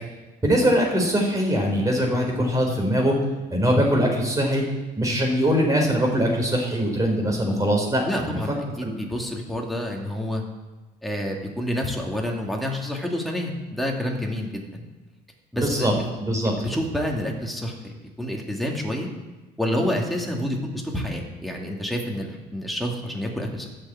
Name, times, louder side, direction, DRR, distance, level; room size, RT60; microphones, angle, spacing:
voice 1, 0.4-3.1 3.5-4.6 5.0-8.4 8.8-8.9 15.5-15.9 16.2-16.8, equal, 20° right, 0 dB, 4.2 m, -22 dB
voice 2, 8.0-10.4 11.0-14.8 15.5-16.0 16.4-19.1 19.6-23.7, equal, ahead, -1 dB, 2.5 m, -28 dB
12.5 x 6.9 x 8.8 m, 1.2 s
cardioid pair, 110°, 17 cm